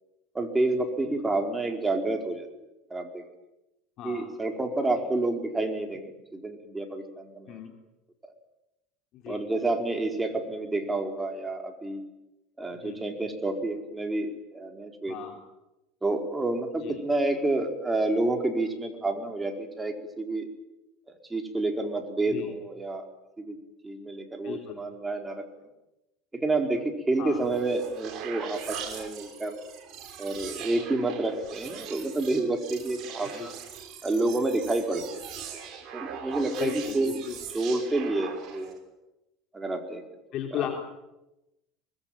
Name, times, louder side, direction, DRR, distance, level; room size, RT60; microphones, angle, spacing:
voice 1, 0.3-2.5 2.9-3.2 4.0-7.6 9.3-12.0 12.6-15.1 16.0-20.5 21.3-23.0 23.4-23.6 23.8-25.4 26.3-29.5 30.2-33.5 34.0-35.0 35.9-38.8 39.5-40.0, right 2 dB, 15° right, 4 dB, 4.5 m, -29 dB
voice 2, 24.4-24.8 27.2-27.4 33.3-33.5 36.6-37.4 40.3-40.8, left 10 dB, 55° left, 2 dB, 3.7 m, -35 dB
sound 1, 27.3-38.8, right 8 dB, 50° right, 6.3 m, -41 dB
24.5 x 20.5 x 9.1 m, 0.96 s
supercardioid pair, 110°, 0 cm